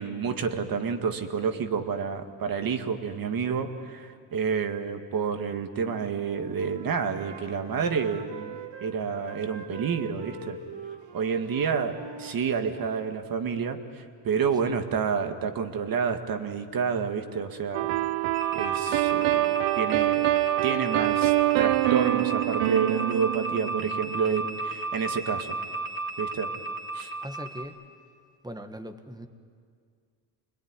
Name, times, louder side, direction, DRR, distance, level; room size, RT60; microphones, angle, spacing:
voice 1, 0.0-10.6 11.1-17.9 18.5-20.3 20.6-25.6 26.2-26.5 26.9-27.1, right 6 dB, 50° right, 6 dB, 2.0 m, -29 dB
Wind instrument woodwind instrument, 5.8-8.9 9.2-13.0, right 4 dB, 65° right, 3.0 m, -43 dB
sound 1, 17.7-24.5, right 19 dB, 80° right, 0.6 m, -25 dB
sound 2, 18.3-27.6, right 2 dB, 25° right, 3.4 m, -33 dB
voice 2, 27.2-27.8 28.4-29.3, equal, 10° right, 7 dB, 1.6 m, -40 dB
26.0 x 21.0 x 9.8 m, 2.1 s
cardioid pair, 105°, 45 cm